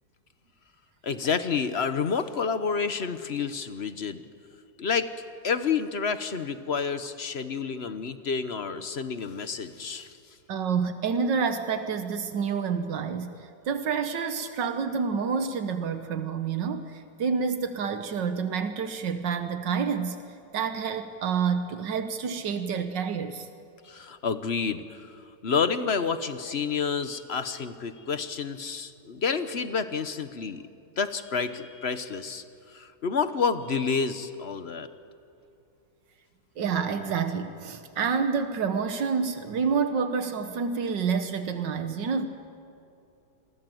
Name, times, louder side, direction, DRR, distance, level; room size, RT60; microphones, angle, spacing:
voice 1, 1.0-4.2 4.8-5.1 5.4-10.1 23.8-30.7 31.0-34.9, left 5 dB, 45° left, 11 dB, 1.1 m, -29 dB
voice 2, 10.5-20.2 20.5-23.5 36.6-42.3, right 6 dB, 80° right, 8 dB, 1.8 m, -28 dB
28.0 x 22.5 x 7.8 m, 2.6 s
omnidirectional pair, 1.9 m